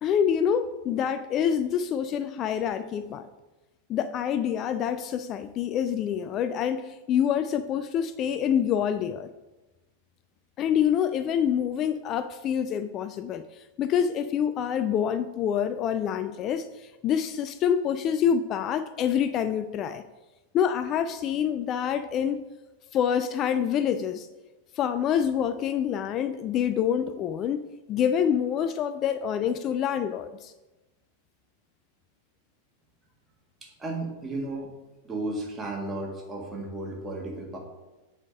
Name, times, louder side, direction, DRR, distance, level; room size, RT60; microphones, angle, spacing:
voice 1, 0.0-3.3 3.9-9.3 10.6-13.4 13.8-20.0 20.5-22.4 22.9-24.3 24.8-27.6 27.9-30.5, left 8 dB, 35° left, 0.3 m, -26 dB
voice 2, 33.6-34.7 35.0-37.6, right 2 dB, 15° right, 1.6 m, -34 dB
8.0 x 3.5 x 5.4 m
figure-of-eight pair, 90°, 0 cm